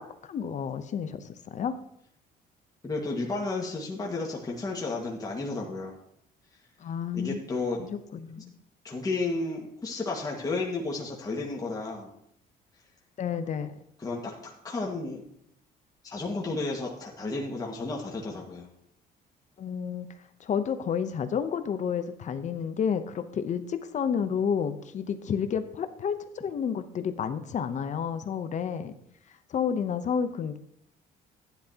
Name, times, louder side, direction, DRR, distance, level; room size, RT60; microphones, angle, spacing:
voice 1, 0.3-1.8 6.8-7.4 7.8-8.5 13.2-13.8 19.6-20.1 20.4-28.9 29.5-30.6, left 7 dB, 45° left, 10 dB, 0.8 m, -30 dB
voice 2, 2.8-5.9 7.1-7.8 8.8-12.1 14.0-15.2 16.0-18.7, left 3 dB, 20° left, -2 dB, 1.7 m, -32 dB
11.5 x 10.0 x 2.9 m, 0.73 s
cardioid pair, 110°, 17 cm